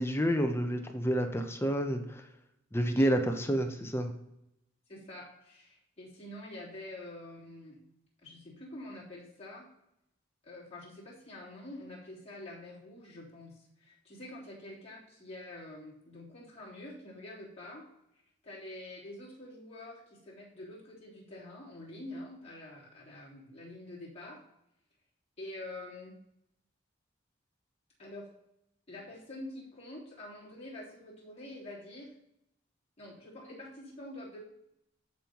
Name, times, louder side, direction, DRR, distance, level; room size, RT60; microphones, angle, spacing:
voice 1, 0.0-2.2 2.7-4.1, equal, 15° left, 6 dB, 0.7 m, -29 dB
voice 2, 4.9-7.8 8.2-9.7 10.4-17.8 18.4-24.4 25.4-26.2 28.0-28.3 28.9-32.1 33.0-34.4, left 1 dB, 35° left, -7 dB, 3.5 m, -46 dB
14.0 x 5.4 x 3.0 m, 0.82 s
head